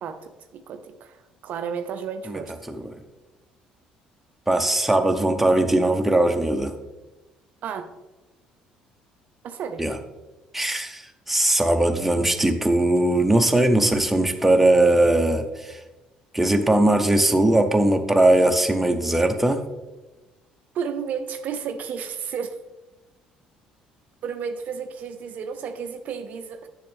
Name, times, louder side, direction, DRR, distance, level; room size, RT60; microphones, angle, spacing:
voice 1, 0.0-2.5 7.6-7.9 9.4-9.8 20.7-22.6 24.2-26.7, right 6 dB, 50° right, 8 dB, 0.5 m, -32 dB
voice 2, 4.5-6.7 9.8-10.0 10.5-15.8 16.3-19.6, right 1 dB, 5° right, 5 dB, 0.9 m, -20 dB
10.5 x 6.3 x 3.4 m, 1.1 s
figure-of-eight pair, 50°, 3 cm